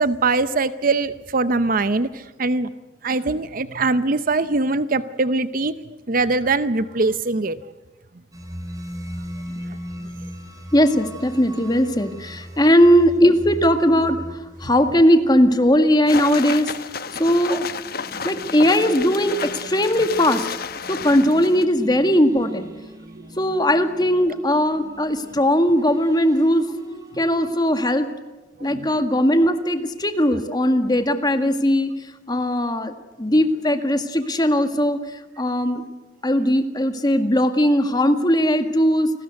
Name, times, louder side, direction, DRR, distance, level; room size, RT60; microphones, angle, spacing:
voice 1, 0.0-2.7 3.0-5.7 6.1-7.6 28.6-28.9, right 3 dB, 50° right, 13 dB, 0.7 m, -22 dB
sound 1, 8.3-27.6, right 1 dB, 20° right, 3.7 m, -39 dB
voice 2, 10.7-14.2 14.6-16.7 17.2-17.7 18.2-20.5 20.9-22.7 23.4-26.7 27.2-28.1 28.6-31.9 32.3-35.8 36.2-39.1, equal, 20° left, 8 dB, 1.8 m, -19 dB
sound 2, 16.1-21.6, left 6 dB, 55° left, 1.0 m, -31 dB
29.0 x 20.0 x 8.1 m, 1.2 s
head